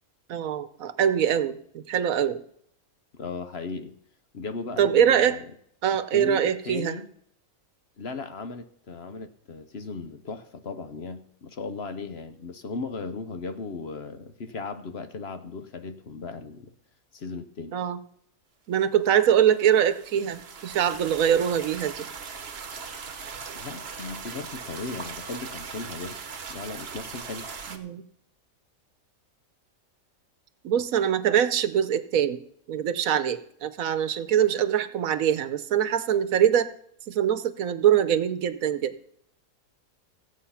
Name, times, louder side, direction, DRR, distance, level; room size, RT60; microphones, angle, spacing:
voice 1, 0.3-2.4 4.8-5.4 5.8-7.0 17.7-18.0 18.7-22.1 27.7-28.0 30.6-36.7 37.1-38.9, right 9 dB, 75° right, 13 dB, 1.2 m, -23 dB
voice 2, 3.1-3.9 4.3-5.4 6.1-7.1 8.0-16.7 17.1-17.8 23.5-26.2 26.5-27.5, left 4 dB, 50° left, 9 dB, 1.0 m, -37 dB
sound 1, 19.4-27.8, right 5 dB, 50° right, 1.2 m, -39 dB
15.5 x 8.5 x 5.7 m, 0.67 s
omnidirectional pair, 1.5 m